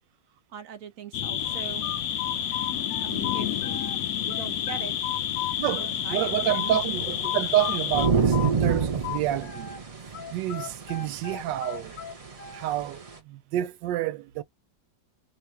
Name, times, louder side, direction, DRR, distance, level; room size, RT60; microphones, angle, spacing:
voice 1, 0.5-1.9 3.0-3.5 4.3-4.9 5.8-6.8, right 8 dB, 65° right, 0.9 m, -40 dB
sound 1, 1.1-8.1, left 10 dB, 70° left, 0.9 m, -30 dB
sound 2, 1.4-4.0 4.3-6.8 7.2-9.8 10.1-12.8, left 11 dB, 85° left, 1.5 m, -35 dB
sound 3, 1.4-13.2, right 5 dB, 35° right, 0.5 m, -31 dB
voice 2, 5.6-9.7 10.3-11.9 12.5-14.4, right 13 dB, 85° right, 1.2 m, -28 dB
3.3 x 2.5 x 4.4 m
omnidirectional pair, 1.9 m